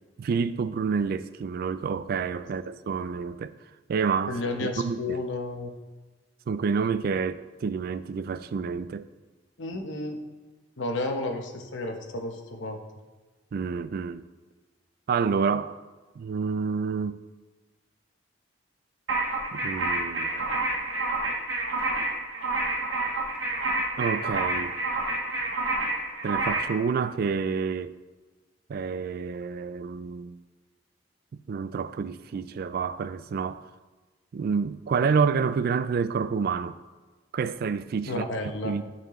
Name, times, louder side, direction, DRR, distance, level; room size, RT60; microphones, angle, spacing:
voice 1, 0.2-3.5 3.9-5.2 6.5-9.1 13.5-14.2 15.1-15.7 16.2-17.2 19.5-20.3 24.0-24.7 26.2-27.9 28.7-30.4 31.3-33.7 34.3-36.8 37.3-38.9, right 5 dB, 55° right, 0.3 m, -28 dB
voice 2, 4.3-5.7 9.6-10.2 10.8-12.8 38.1-38.7, left 2 dB, 80° left, 0.9 m, -32 dB
sound 1, 19.1-26.8, right 2 dB, 80° right, 1.3 m, -29 dB
11.5 x 4.4 x 3.1 m
head